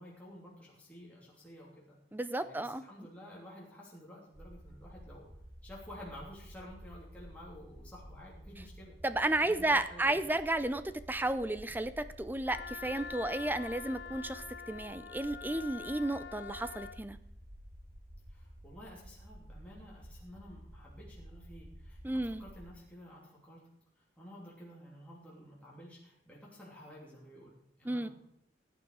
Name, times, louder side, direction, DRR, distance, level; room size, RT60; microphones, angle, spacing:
voice 1, 0.0-2.0 2.4-5.3 5.6-9.0 9.3-10.3 18.3-23.6 24.0-28.1, equal, 10° left, -5 dB, 3.1 m, -52 dB
voice 2, 2.1-2.8 9.0-17.2 22.0-22.4 27.9-28.1, right 2 dB, 10° right, 13 dB, 0.4 m, -33 dB
sound 1, 4.3-22.8, equal, 40° right, 2.4 m, -52 dB
Wind instrument woodwind instrument, 12.5-17.0, left 6 dB, 60° left, 0.5 m, -45 dB
16.0 x 9.5 x 4.8 m, 0.78 s
head